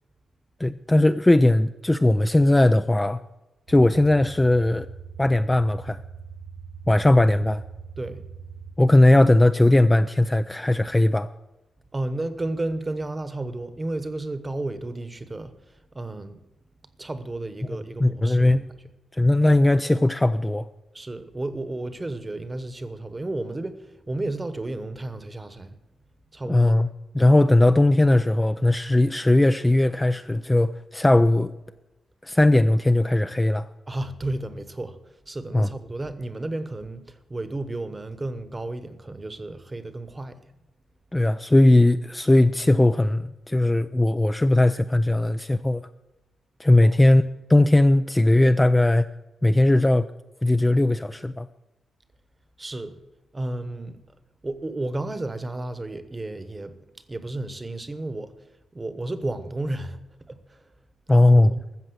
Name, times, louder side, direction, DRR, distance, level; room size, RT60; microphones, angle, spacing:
voice 1, 0.6-3.2 3.7-4.9 5.2-6.0 6.9-7.6 8.8-11.3 18.0-18.7 19.1-20.7 26.5-26.9 27.1-31.5 32.2-33.7 35.5-35.7 41.1-45.9 46.6-47.2 47.5-49.1 49.4-50.1 50.4-51.5 61.1-61.5, left 1 dB, 10° left, 0.3 m, -18 dB
sound 1, 3.7-8.7, right 6 dB, 85° right, 0.5 m, -41 dB
voice 2, 11.9-16.4 17.0-18.8 20.9-25.8 26.3-26.7 33.9-40.4 46.8-47.0 52.6-53.0 53.3-54.0 54.4-56.8 57.1-58.5 58.7-60.0 60.2-60.7 61.1-61.6, right 2 dB, 20° right, 1.0 m, -32 dB
13.5 x 7.6 x 7.9 m
wide cardioid pair, 140°, 0 cm